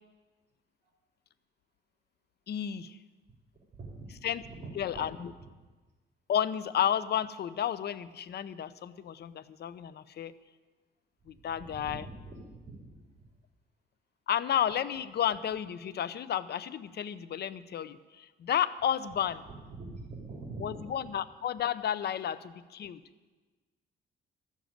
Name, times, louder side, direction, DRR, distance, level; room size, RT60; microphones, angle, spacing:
voice 1, 2.5-3.0 4.2-4.4 4.8-5.3 6.3-10.3 11.3-12.0 14.3-19.4 20.6-23.0, left 9 dB, 55° left, 16 dB, 0.7 m, -32 dB
voice 2, 3.7-5.5 11.3-12.9 19.5-21.1, right 3 dB, 35° right, 0 dB, 3.9 m, -45 dB
13.0 x 7.3 x 9.0 m, 1.3 s
cardioid pair, 90°, 20 cm